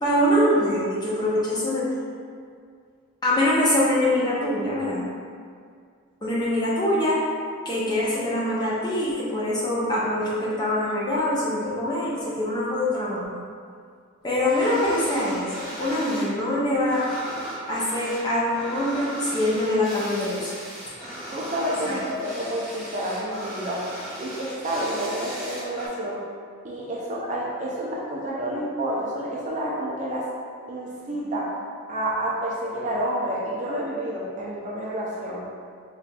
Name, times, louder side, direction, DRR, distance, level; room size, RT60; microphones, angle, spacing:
voice 1, 0.0-2.0 3.2-5.0 6.2-7.2 7.6-13.4 14.2-17.0 17.7-20.5 21.8-22.0, left 1 dB, 20° left, -7 dB, 0.6 m, -24 dB
sound 1, 14.4-16.3 16.6-25.9, right 1 dB, ahead, 1.0 m, -37 dB
voice 2, 21.3-23.9 24.2-26.2 26.6-30.3 30.7-31.5 31.9-35.4, right 1 dB, 35° right, -4 dB, 0.4 m, -29 dB
5.5 x 2.4 x 2.2 m, 2.1 s
head